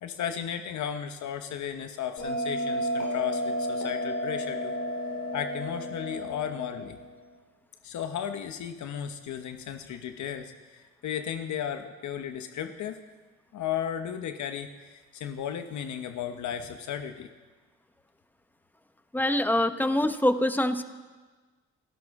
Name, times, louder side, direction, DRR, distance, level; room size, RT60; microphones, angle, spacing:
voice 1, 0.0-4.7 5.3-7.0 7.8-13.0 13.5-17.3, left 9 dB, 70° left, 7 dB, 1.0 m, -34 dB
Bell, 2.2-7.3, equal, 90° left, 4.1 m, -32 dB
voice 2, 19.1-20.8, left 1 dB, 5° left, 9 dB, 1.0 m, -24 dB
28.0 x 12.0 x 3.6 m, 1.3 s
cardioid pair, 90°, 30 cm